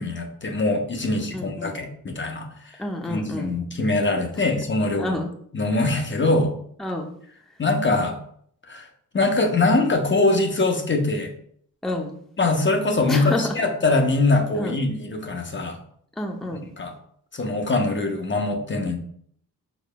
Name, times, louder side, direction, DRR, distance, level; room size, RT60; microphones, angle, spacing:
voice 1, 0.0-2.8 3.1-5.2 5.5-6.5 7.6-8.2 8.7-8.9 9.1-11.3 12.4-15.8 16.8-16.9 17.3-19.0, left 2 dB, 35° left, 4 dB, 0.8 m, -23 dB
voice 2, 1.3-1.8 2.8-3.6 5.0-5.3 6.8-7.1 11.8-12.2 13.1-13.5 14.6-14.7 16.2-16.7, left 1 dB, ahead, 2 dB, 0.6 m, -29 dB
5.0 x 3.9 x 2.2 m, 0.64 s
cardioid pair, 60°, 35 cm